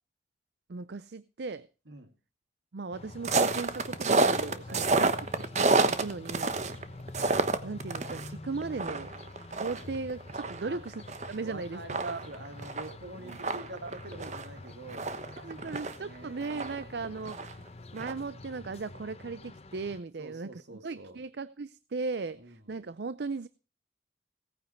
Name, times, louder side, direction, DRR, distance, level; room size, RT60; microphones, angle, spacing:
voice 1, 0.7-1.7 2.7-6.6 7.6-9.1 9.5-12.2 13.3-13.4 13.8-13.9 15.4-17.5 17.9-20.5 20.8-23.5, right 4 dB, 70° right, 16 dB, 0.5 m, -37 dB
sound 1, 2.9-20.0, left 2 dB, 35° left, 0.8 m, -47 dB
sound 2, 3.2-8.3 8.6-11.3 11.6-11.7 11.9-16.0 16.4-17.7 18.0-18.1, right 3 dB, 40° right, 1.1 m, -29 dB
voice 2, 11.4-15.3 15.6-16.4 16.9-17.2 20.2-21.2 22.3-22.7, right 1 dB, 85° right, 7 dB, 2.6 m, -46 dB
17.5 x 9.5 x 4.5 m, 0.34 s
head